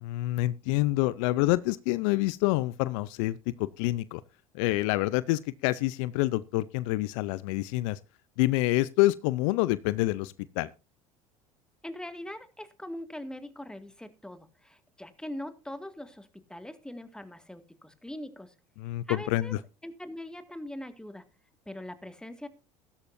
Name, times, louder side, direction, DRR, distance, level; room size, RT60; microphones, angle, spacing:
voice 1, 0.0-4.2 4.5-8.0 8.4-10.7 18.8-19.6, left 18 dB, 70° left, 0.6 m, -27 dB
voice 2, 11.8-18.5 19.1-19.5 19.8-21.2 21.7-22.5, left 1 dB, 5° left, 2.1 m, -41 dB
15.5 x 13.0 x 2.7 m
hypercardioid pair, 70°, 17 cm